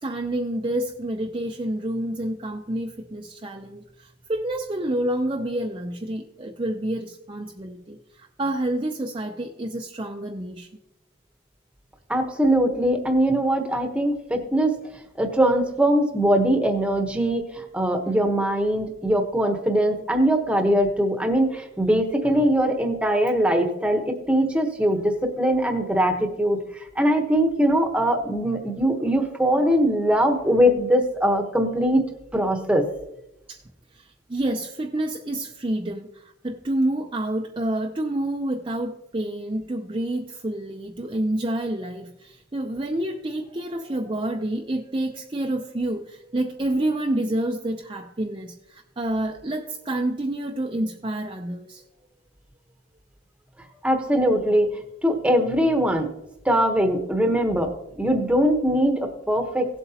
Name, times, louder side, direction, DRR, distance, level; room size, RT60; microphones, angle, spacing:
voice 1, 0.0-10.7 33.5-33.6 33.9-51.8, right 1 dB, 25° right, 2 dB, 0.6 m, -28 dB
voice 2, 12.1-14.8 15.2-32.1 32.3-32.8 53.8-54.7 55.0-56.1 56.4-59.7, equal, 5° right, 4 dB, 1.0 m, -21 dB
17.5 x 7.9 x 2.9 m, 0.87 s
head